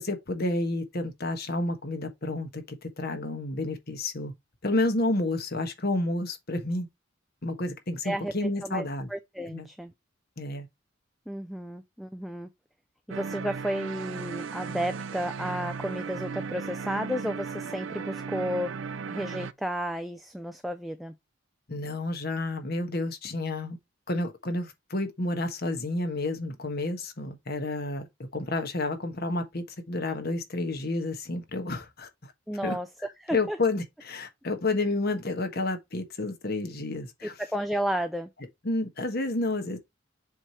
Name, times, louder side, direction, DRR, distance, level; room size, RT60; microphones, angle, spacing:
voice 1, 0.0-4.3 4.6-6.9 7.4-9.1 9.5-9.7 10.4-10.7 21.7-23.8 24.1-28.1 28.3-32.1 32.6-32.8 33.3-37.3 38.6-39.8, left 2 dB, 50° left, 1.3 m, -30 dB
voice 2, 8.0-9.9 11.3-12.5 13.1-18.7 19.1-21.1 32.5-32.9 33.2-33.6 37.2-38.3, equal, ahead, 0.3 m, -32 dB
sound 1, 13.1-19.5, right 5 dB, 65° right, 0.5 m, -36 dB
7.4 x 3.3 x 4.2 m
head